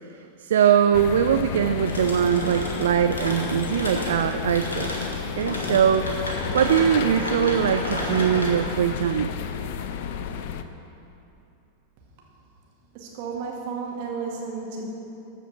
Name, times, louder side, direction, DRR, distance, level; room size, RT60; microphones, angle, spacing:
voice 1, 0.4-6.1 6.5-9.3, right 9 dB, 60° right, 8 dB, 0.3 m, -22 dB
sound 1, 0.9-10.6, left 9 dB, 50° left, 0.5 m, -32 dB
sound 2, 1.9-10.5, left 1 dB, 75° left, 1.7 m, -32 dB
voice 2, 12.9-14.8, right 5 dB, 45° right, -2 dB, 2.0 m, -32 dB
13.5 x 5.0 x 6.6 m, 2.8 s
figure-of-eight pair, 90°, 0 cm